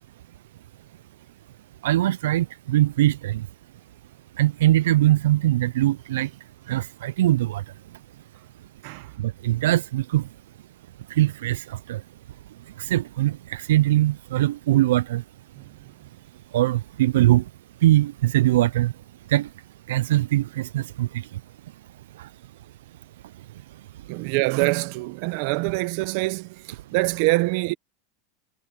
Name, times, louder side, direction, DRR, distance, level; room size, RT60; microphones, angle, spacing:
voice 1, 1.8-3.4 4.4-6.3 6.7-7.6 9.2-10.3 11.1-12.0 12.8-15.2 16.5-17.4 17.8-18.9 19.3-19.5 19.9-21.1 22.2-22.3, right 15 dB, 90° right, 0.4 m, -21 dB
voice 2, 24.1-27.7, right 23 dB, 55° right, 0.8 m, -25 dB
supercardioid pair, 160°, 0 cm